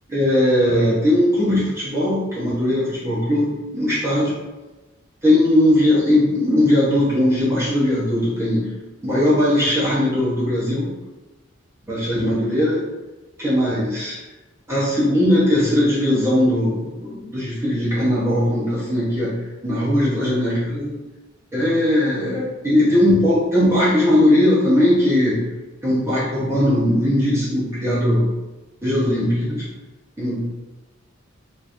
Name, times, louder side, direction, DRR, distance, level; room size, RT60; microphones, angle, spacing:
voice 1, 0.1-4.3 5.2-8.7 9.0-10.9 11.9-12.8 13.4-14.2 14.7-19.3 19.6-21.0 21.5-25.4 25.8-28.3 28.8-29.7 30.2-30.4, left 1 dB, 15° right, -9 dB, 1.0 m, -19 dB
3.8 x 3.2 x 2.6 m, 1.1 s
head